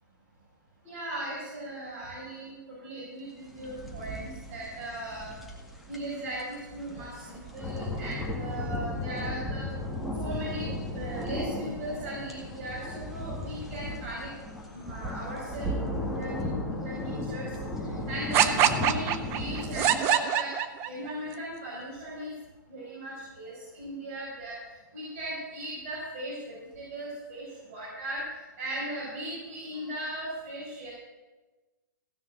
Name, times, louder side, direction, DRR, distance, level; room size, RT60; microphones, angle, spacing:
voice 1, 0.8-5.3 5.9-9.7 10.2-14.3 14.7-20.6 20.9-22.3 22.7-30.9, right 1 dB, 45° right, -7 dB, 5.7 m, -38 dB
sound 1, 3.5-20.0, left 1 dB, ahead, 1.9 m, -35 dB
sound 2, 18.3-21.1, right 10 dB, 25° right, 0.7 m, -24 dB
16.0 x 6.0 x 7.8 m, 1.2 s
hypercardioid pair, 145°, 11 cm